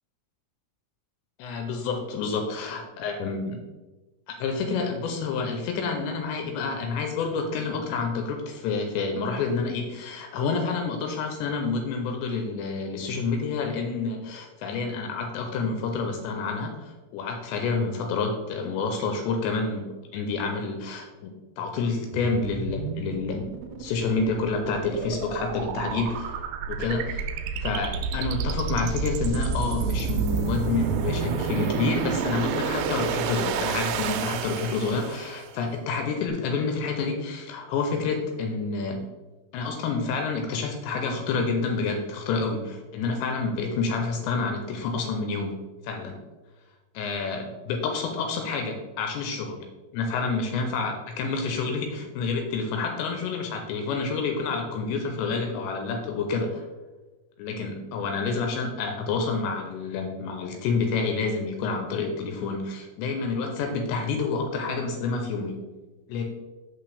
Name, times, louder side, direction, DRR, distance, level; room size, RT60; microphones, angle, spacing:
voice 1, 1.4-3.6 4.3-23.5 23.8-27.2 27.6-39.1 39.5-46.2 46.9-49.7 49.9-56.6 57.4-65.6 66.1-66.2, left 4 dB, 80° left, 3 dB, 2.8 m, -28 dB
sound 1, 22.1-35.5, right 6 dB, 85° right, 2.7 m, -30 dB
6.2 x 6.0 x 3.4 m, 1.2 s
omnidirectional pair, 5.2 m